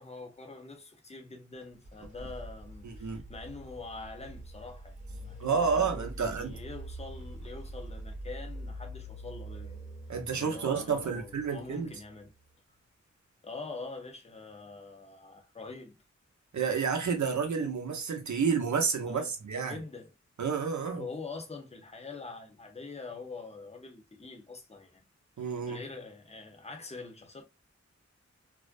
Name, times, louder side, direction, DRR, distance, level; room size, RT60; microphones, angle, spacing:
voice 1, 0.0-9.8 10.4-12.3 13.4-16.0 19.1-19.3 19.6-20.1 20.9-25.1 25.4-27.4, left 3 dB, 20° left, 0.7 m, -44 dB
sound 1, 1.6-12.4, right 1 dB, 25° right, 1.0 m, -44 dB
voice 2, 2.8-3.2 5.4-6.6 10.1-11.9 16.5-19.8 20.4-21.1 25.4-25.8, right 6 dB, 75° right, 0.7 m, -30 dB
2.5 x 2.1 x 2.4 m
wide cardioid pair, 55°, 29 cm